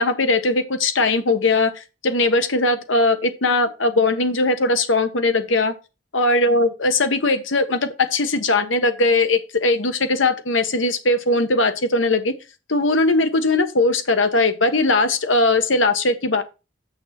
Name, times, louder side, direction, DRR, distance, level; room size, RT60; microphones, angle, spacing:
voice 1, 0.0-5.7 6.1-12.3 12.7-16.4, left 2 dB, 85° left, 1.2 m, -19 dB
7.2 x 6.4 x 4.3 m
head